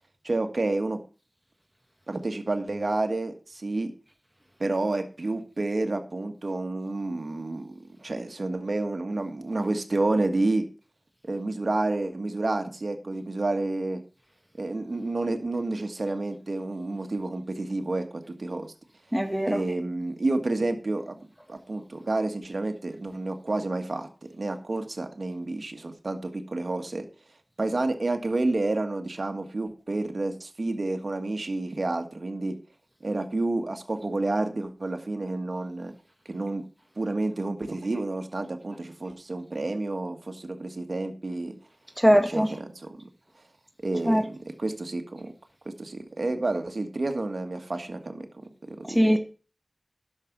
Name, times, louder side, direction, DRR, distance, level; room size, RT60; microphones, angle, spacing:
voice 1, 0.2-1.0 2.1-3.9 4.6-10.6 11.2-14.0 14.6-18.7 19.5-21.2 21.5-24.1 24.4-27.0 27.6-32.6 33.0-35.9 36.3-36.6 37.0-41.6 42.3-42.9 43.8-45.3 45.8-48.3 48.7-49.2, right 2 dB, 65° right, 6 dB, 1.6 m, -29 dB
voice 2, 19.1-19.6 42.0-42.5 44.1-44.2 49.0-49.2, equal, ahead, 5 dB, 1.7 m, -20 dB
10.5 x 6.6 x 6.0 m, 0.36 s
wide cardioid pair, 40°, 0 cm